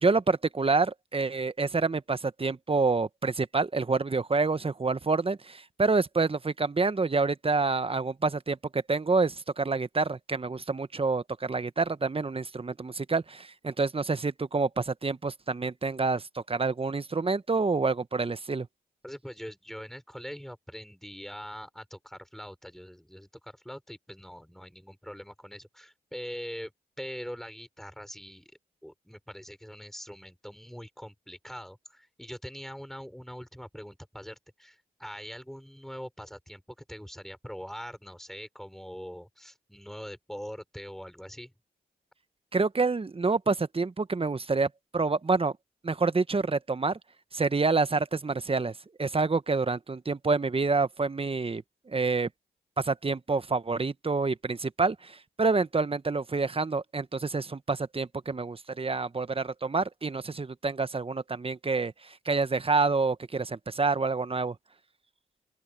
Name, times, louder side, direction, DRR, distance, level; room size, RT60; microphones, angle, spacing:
voice 1, 0.0-18.7 42.5-45.5 45.8-47.0 47.3-52.3 52.8-64.5, right 4 dB, 35° right, 1.3 m, -28 dB
voice 2, 19.0-26.7 27.0-28.5 28.8-41.5, equal, ahead, 5.9 m, -43 dB
open air
supercardioid pair, 40°, 18 cm